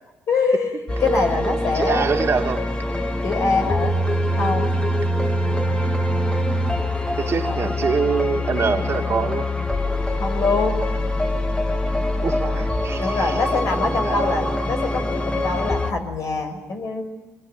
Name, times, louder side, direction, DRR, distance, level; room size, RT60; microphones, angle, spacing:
voice 1, 0.3-2.1 3.2-3.9 4.3-4.7 7.4-7.7 10.1-10.8 13.0-17.0, left 4 dB, 60° left, 5 dB, 5.5 m, -24 dB
sound 1, 0.9-15.9, left 1 dB, 15° left, 2.2 m, -24 dB
voice 2, 1.7-2.6 6.8-6.9 7.2-9.5 12.2-13.4 13.8-14.5, right 5 dB, 45° right, 4 dB, 2.4 m, -25 dB
23.5 x 21.5 x 9.3 m, 1.1 s
supercardioid pair, 70°, 6 cm